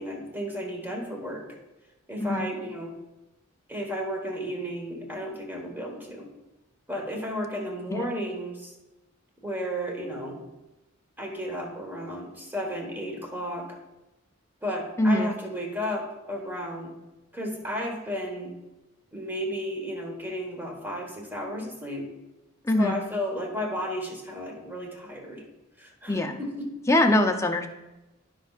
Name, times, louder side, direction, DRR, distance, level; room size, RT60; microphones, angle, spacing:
voice 1, 0.0-1.5 2.1-2.9 3.7-6.3 6.9-8.7 9.4-10.4 11.2-13.8 14.6-16.9 17.3-18.6 19.1-22.1 22.8-25.4 25.8-26.7, equal, 10° right, 1 dB, 1.4 m, -33 dB
voice 2, 15.0-15.3 22.6-23.0 26.1-26.4 26.9-27.7, left 1 dB, 15° left, 4 dB, 0.6 m, -22 dB
15.0 x 5.4 x 2.5 m, 1.0 s
head